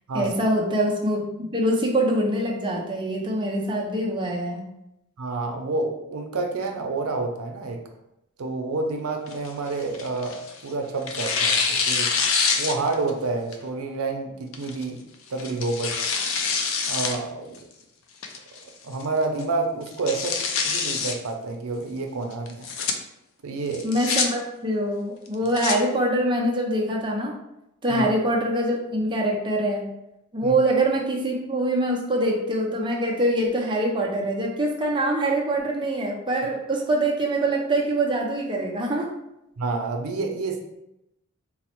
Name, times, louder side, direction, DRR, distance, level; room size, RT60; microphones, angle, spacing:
voice 1, 0.1-1.2 1.5-4.6 23.8-27.4 27.8-29.9 30.3-39.1, right 1 dB, 25° right, -1 dB, 0.6 m, -24 dB
voice 2, 5.2-7.8 8.4-10.4 10.6-12.1 12.6-16.0 16.9-17.6 18.8-20.4 20.6-22.7 23.4-23.8 27.9-28.0 30.4-30.5 39.6-40.6, right 3 dB, 90° right, 3 dB, 0.5 m, -28 dB
Tearing, 9.3-10.6 11.1-13.1 13.5-13.6 14.5-14.8 15.4-17.2 17.5-17.6 18.2-18.6 19.0-19.1 19.4-19.5 19.9-21.2 22.5-22.9 23.7-24.3 25.3-25.8, left 5 dB, 65° left, 0.4 m, -25 dB
3.9 x 2.0 x 2.9 m, 0.85 s
head